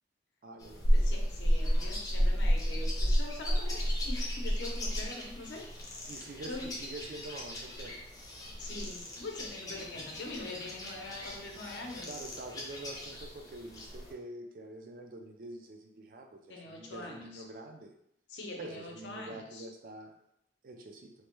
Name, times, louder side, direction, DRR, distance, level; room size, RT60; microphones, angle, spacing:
voice 1, 0.4-1.0 6.1-8.0 12.0-17.9 18.6-20.1 20.6-21.1, right 2 dB, 50° right, 4 dB, 0.3 m, -46 dB
sound 1, 0.6-14.1, equal, 20° left, 0.5 m, -33 dB
voice 2, 0.9-5.7 6.2-6.7 8.6-12.2 16.5-17.4 18.3-19.6, left 2 dB, 90° left, 0 dB, 0.6 m, -43 dB
3.1 x 2.1 x 3.0 m, 0.75 s
head